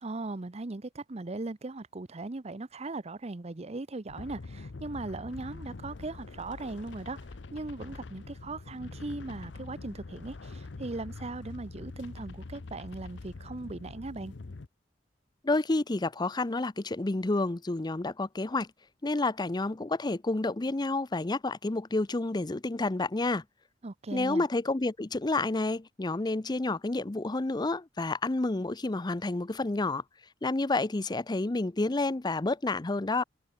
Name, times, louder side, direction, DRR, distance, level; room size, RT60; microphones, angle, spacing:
voice 1, 0.0-7.2 7.5-14.3 23.8-24.4, right 2 dB, 35° right, 0.8 m, -38 dB
sound 1, 4.1-14.7, left 3 dB, 90° left, 0.7 m, -44 dB
voice 2, 15.4-18.7 19.0-23.4 24.1-30.0 30.4-33.2, left 2 dB, 25° left, 0.6 m, -29 dB
head